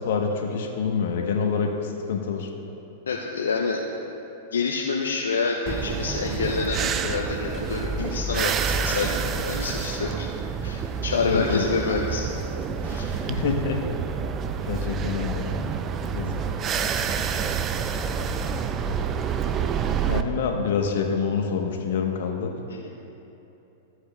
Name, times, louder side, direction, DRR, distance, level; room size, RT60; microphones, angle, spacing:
voice 1, 0.0-2.5 11.2-11.6 13.2-13.8 14.6-15.6 16.1-16.3 20.0-22.5, left 5 dB, 70° left, 2 dB, 1.0 m, -26 dB
voice 2, 3.1-3.8 4.5-10.3 10.6-12.3 12.8-13.2 22.7-22.9, left 4 dB, 90° left, 0 dB, 0.5 m, -27 dB
sound 1, 5.7-20.2, right 6 dB, 30° right, 0.4 m, -28 dB
14.0 x 7.9 x 2.3 m, 3.0 s
hypercardioid pair, 115°, 0 cm